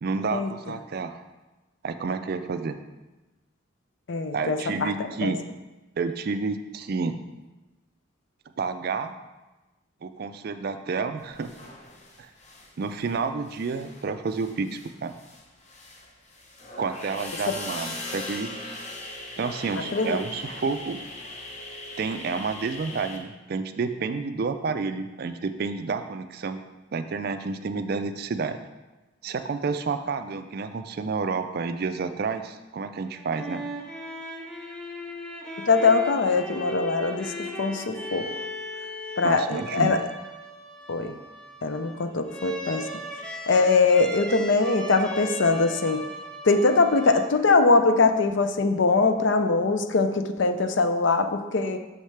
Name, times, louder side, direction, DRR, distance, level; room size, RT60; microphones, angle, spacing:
voice 1, 0.0-1.2 1.8-2.8 4.3-5.4 6.0-7.2 8.6-9.1 10.0-11.5 12.8-15.1 16.8-18.5 19.4-21.0 22.0-26.6 26.9-28.6 29.2-33.6 39.2-40.0, right 4 dB, 45° right, 9 dB, 0.3 m, -30 dB
voice 2, 4.1-4.9 5.2-5.3 17.5-17.6 19.8-20.2 35.7-37.3 37.6-38.3 39.2-40.0 40.9-41.1 41.6-43.0 43.5-46.0 46.4-51.8, left 3 dB, 60° left, 8 dB, 0.5 m, -22 dB
sound 1, 11.3-13.2 13.4-23.2, left 2 dB, 35° left, 0.8 m, -40 dB
sound 2, 33.1-47.7, equal, 5° left, 0.5 m, -38 dB
6.5 x 6.5 x 3.3 m, 1.1 s
head